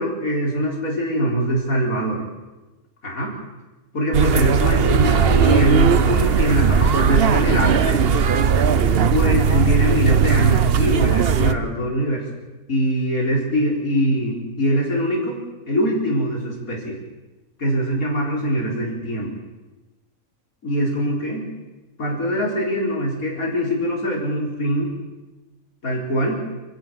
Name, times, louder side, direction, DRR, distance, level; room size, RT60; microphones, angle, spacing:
voice 1, 0.0-2.2 3.0-3.4 3.9-8.1 9.1-12.2 12.7-15.4 15.7-17.0 17.6-19.3 20.6-21.4 22.0-24.9 25.8-26.3, equal, 85° left, -2 dB, 4.7 m, -22 dB
sound 1, 4.1-11.5, right 6 dB, 50° right, 1.0 m, -17 dB
26.0 x 15.5 x 7.6 m, 1.1 s
omnidirectional pair, 1.5 m